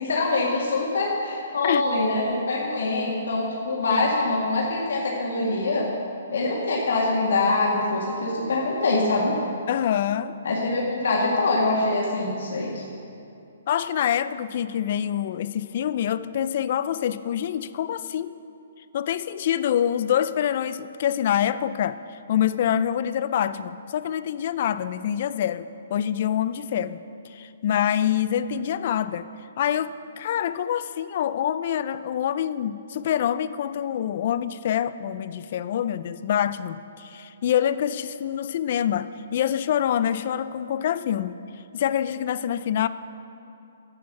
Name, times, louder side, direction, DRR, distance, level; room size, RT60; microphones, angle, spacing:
voice 1, 0.0-5.9 6.3-9.3 10.4-12.8, left 2 dB, 75° left, -4 dB, 1.9 m, -24 dB
voice 2, 9.7-10.4 13.7-18.4 18.9-27.0 27.3-29.3 29.6-41.4 41.7-42.9, left 10 dB, 40° left, 14 dB, 0.4 m, -26 dB
12.5 x 8.7 x 6.0 m, 2.7 s
hypercardioid pair, 165°, 0 cm